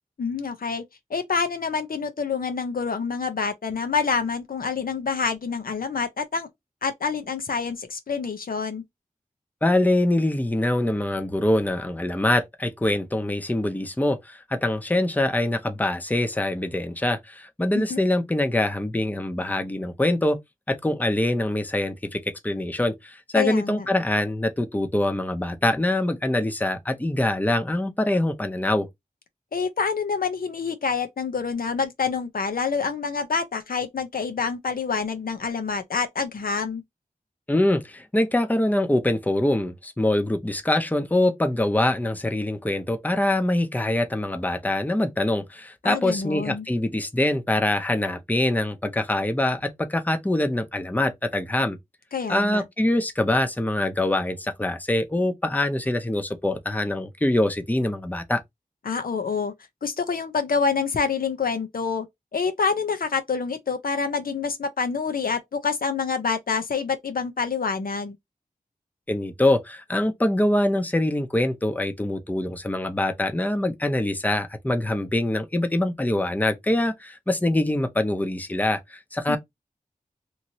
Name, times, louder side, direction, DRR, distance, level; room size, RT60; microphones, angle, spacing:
voice 1, 0.2-0.8 1.1-6.5 6.8-8.8 17.7-18.0 23.3-23.9 29.5-36.8 45.8-46.7 52.1-52.6 58.8-59.5 59.8-62.1 62.3-68.2 79.3-79.4, left 5 dB, 80° left, 0.6 m, -27 dB
voice 2, 9.6-20.4 20.7-28.9 37.5-51.8 52.3-58.4 69.1-79.4, left 1 dB, 10° left, 0.6 m, -24 dB
3.0 x 2.7 x 2.7 m
wide cardioid pair, 70°, 15 cm